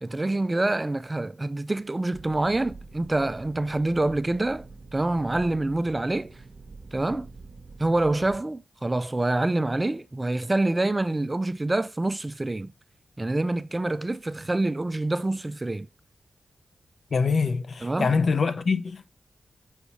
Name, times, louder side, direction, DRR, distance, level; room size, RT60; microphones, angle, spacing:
voice 1, 0.0-4.6 4.9-6.3 6.9-7.3 7.8-12.7 13.2-15.9 17.8-18.1, right 2 dB, 20° right, 0.3 m, -26 dB
sound 1, 2.1-8.4, right 3 dB, 55° right, 1.0 m, -46 dB
voice 2, 17.1-19.1, left 5 dB, 60° left, 0.6 m, -24 dB
5.6 x 4.2 x 4.4 m
wide cardioid pair, 105°, 0 cm